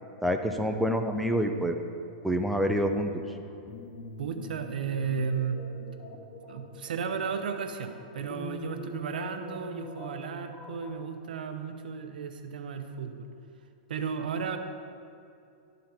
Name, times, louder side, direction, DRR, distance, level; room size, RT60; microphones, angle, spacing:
voice 1, 0.2-1.8 2.2-3.2, equal, ahead, 3 dB, 0.3 m, -27 dB
sound 1, 3.2-10.9, left 3 dB, 20° left, 0.8 m, -45 dB
voice 2, 4.2-5.6 6.5-13.3 13.9-14.6, right 6 dB, 90° right, 6 dB, 0.7 m, -34 dB
12.0 x 4.0 x 4.3 m, 2.5 s
supercardioid pair, 160°, 5 cm